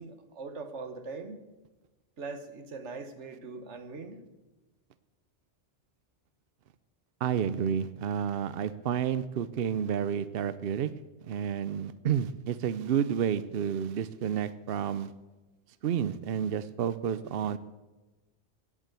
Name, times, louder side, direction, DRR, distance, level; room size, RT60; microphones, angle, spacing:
voice 1, 0.0-1.4 2.2-4.2, right 4 dB, 85° right, 9 dB, 1.5 m, -41 dB
voice 2, 7.2-10.9 11.2-15.1 15.8-17.6, right 8 dB, 60° right, 15 dB, 0.8 m, -30 dB
16.5 x 7.4 x 8.2 m, 1.1 s
omnidirectional pair, 1.2 m